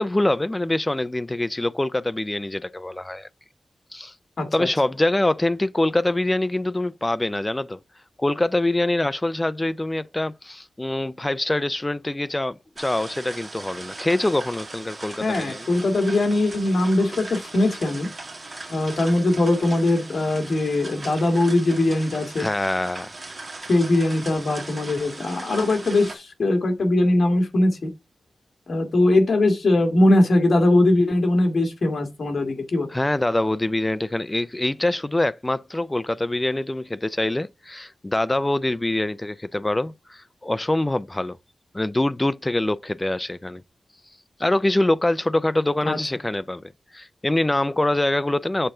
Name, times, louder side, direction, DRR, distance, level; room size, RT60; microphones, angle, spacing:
voice 1, 0.0-3.3 3.9-4.1 4.5-7.8 8.2-15.7 22.4-23.1 32.9-41.4 41.7-43.6 44.4-46.6 46.9-48.7, left 1 dB, 15° left, 0.4 m, -24 dB
voice 2, 4.4-4.7 15.2-18.1 18.7-22.5 23.7-27.9 28.7-32.9 45.9-46.0, left 2 dB, 65° left, 1.9 m, -21 dB
sound 1, 12.8-26.1, right 3 dB, 40° right, 1.7 m, -39 dB
6.7 x 3.8 x 5.5 m
wide cardioid pair, 115°, 0 cm